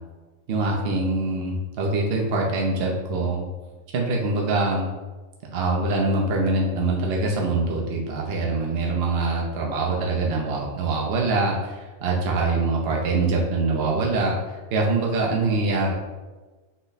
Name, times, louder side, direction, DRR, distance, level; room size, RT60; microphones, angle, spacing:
voice 1, 0.5-3.4 3.9-4.9 5.5-15.9, right 3 dB, 55° right, -2 dB, 0.8 m, -24 dB
6.2 x 2.2 x 3.9 m, 1.2 s
omnidirectional pair, 1.4 m